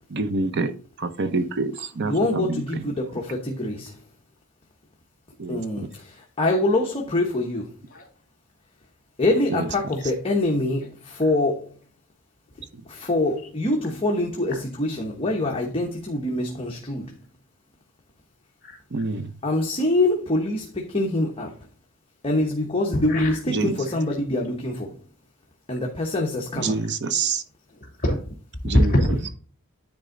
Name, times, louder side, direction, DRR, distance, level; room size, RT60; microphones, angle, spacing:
voice 1, 0.1-3.0 5.4-5.9 9.5-9.7 12.7-12.8 18.9-19.3 23.5-23.9 26.6-27.4 28.6-28.9, right 3 dB, 55° right, 0.7 m, -27 dB
voice 2, 2.1-4.0 5.5-7.7 9.2-11.7 12.9-17.2 19.4-21.5 22.2-25.0 25.7-26.8, left 2 dB, 25° left, 1.1 m, -25 dB
voice 3, 22.9-23.4 23.8-24.0 27.8-28.3 28.6-29.3, left 1 dB, 40° left, 2.8 m, -24 dB
9.8 x 4.4 x 3.8 m
head